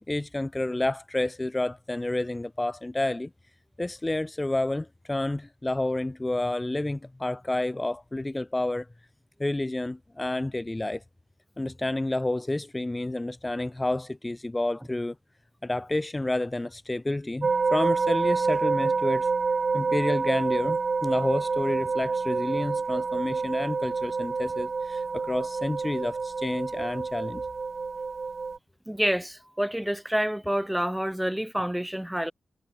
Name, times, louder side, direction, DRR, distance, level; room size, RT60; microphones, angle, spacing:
voice 1, 0.1-3.3 3.8-8.9 9.4-11.0 11.6-15.1 15.6-19.3 19.7-27.4, left 2 dB, 20° left, 0.7 m, -29 dB
sound 1, 17.4-28.6, right 4 dB, 50° right, 1.1 m, -28 dB
voice 2, 28.9-32.3, equal, 5° right, 2.1 m, -28 dB
cardioid pair, 55°, 0 cm